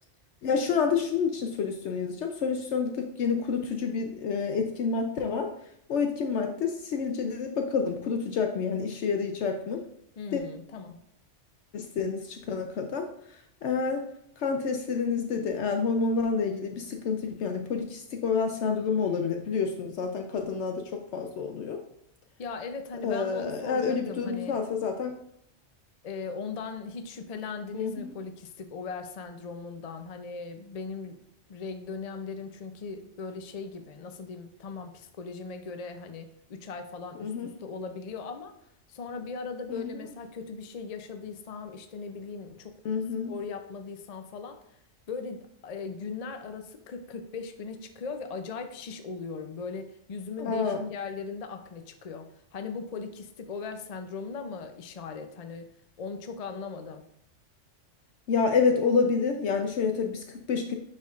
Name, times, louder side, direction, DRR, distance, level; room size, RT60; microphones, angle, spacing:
voice 1, 0.4-5.5 5.9-9.8 10.3-10.4 11.7-13.1 13.6-14.0 14.4-21.8 23.0-25.1 27.7-28.1 37.2-37.5 39.7-39.9 42.8-43.3 50.4-50.9 58.3-60.8, left 5 dB, 70° left, 4 dB, 0.9 m, -28 dB
voice 2, 10.2-11.0 22.4-24.6 26.0-31.2 31.5-38.5 38.9-42.8 43.3-44.6 45.1-55.7 56.0-57.1, left 4 dB, 50° left, 6 dB, 0.4 m, -39 dB
9.4 x 4.5 x 2.4 m, 0.72 s
omnidirectional pair, 1.2 m